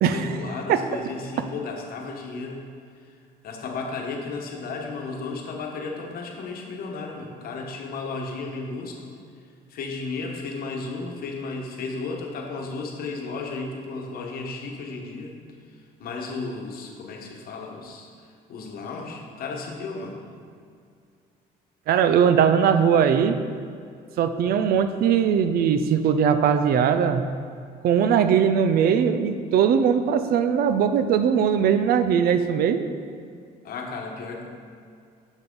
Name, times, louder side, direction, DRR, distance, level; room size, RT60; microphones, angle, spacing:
voice 1, 0.1-2.6 3.0-9.0 9.4-15.4 15.7-18.1 18.5-20.2 33.6-34.5, left 3 dB, 60° left, 1 dB, 1.1 m, -34 dB
voice 2, 21.9-23.4 24.2-27.3 27.8-32.8, right 7 dB, 65° right, 10 dB, 0.5 m, -20 dB
7.1 x 5.9 x 3.8 m, 2.3 s
cardioid pair, 110°, 17 cm